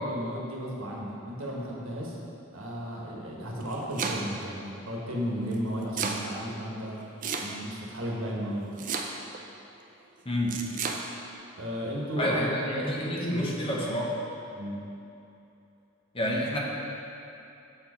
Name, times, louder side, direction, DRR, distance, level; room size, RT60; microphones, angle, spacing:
voice 1, 0.0-2.1 2.5-7.0 7.4-8.7 11.6-13.9 14.5-14.8, equal, 70° right, -3 dB, 1.2 m, -34 dB
Domestic sounds home sounds, 3.4-4.5 5.5-6.2 7.2-7.8 8.8-9.4 10.5-11.0, right 5 dB, 40° right, 0.4 m, -32 dB
voice 2, 10.3-10.6 12.2-14.1 16.1-16.6, left 1 dB, 25° left, -3 dB, 0.8 m, -29 dB
7.5 x 4.5 x 4.2 m, 2.8 s
head